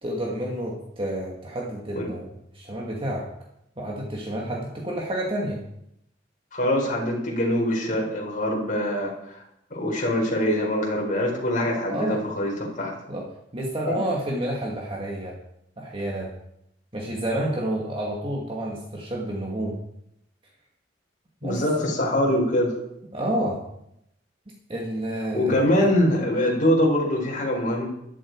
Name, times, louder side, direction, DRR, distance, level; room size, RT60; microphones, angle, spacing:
voice 1, 0.0-3.2 3.8-5.6 11.9-12.2 13.1-13.2 13.5-15.4 15.8-16.3 16.9-19.8 21.4-22.2 23.1-23.6 24.7-26.0, right 1 dB, 30° right, -2 dB, 2.1 m, -30 dB
voice 2, 6.5-9.4 9.7-12.9 13.8-14.0 21.4-22.8 25.3-27.9, left 1 dB, 45° left, -2 dB, 4.8 m, -23 dB
14.5 x 12.5 x 4.8 m, 0.80 s
head